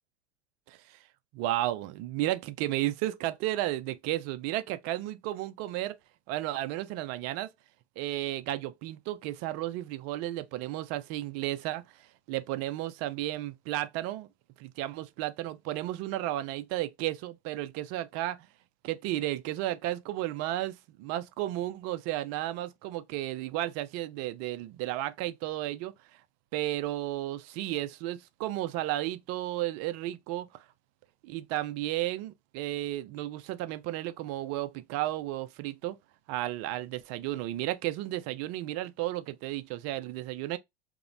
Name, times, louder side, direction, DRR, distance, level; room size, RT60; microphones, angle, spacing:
voice 1, 1.3-6.0 6.3-7.5 8.0-11.8 12.3-14.3 14.6-18.5 18.8-25.9 26.5-30.5 31.2-36.0 36.3-40.6, right 15 dB, 50° right, 0.4 m, -33 dB
2.8 x 2.0 x 2.4 m
hypercardioid pair, 85°, 34 cm